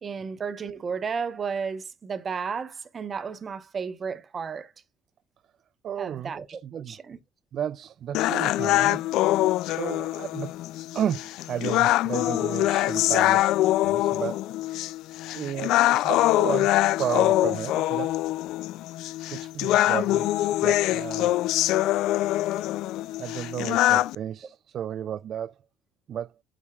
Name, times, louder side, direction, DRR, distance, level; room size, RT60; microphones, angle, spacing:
voice 1, 0.0-4.7 6.0-7.2, right 6 dB, 30° right, 0.9 m, -33 dB
voice 2, 5.8-7.0 7.5-9.0 9.7-10.5 10.9-13.6 13.8-14.4 15.3-16.7 17.0-18.1 19.3-21.3 23.2-25.5 26.1-26.3, right 9 dB, 45° right, 0.3 m, -33 dB
sound 1, 8.1-24.2, left 15 dB, 65° left, 0.3 m, -24 dB
8.6 x 6.3 x 2.3 m
cardioid pair, 145°, 0 cm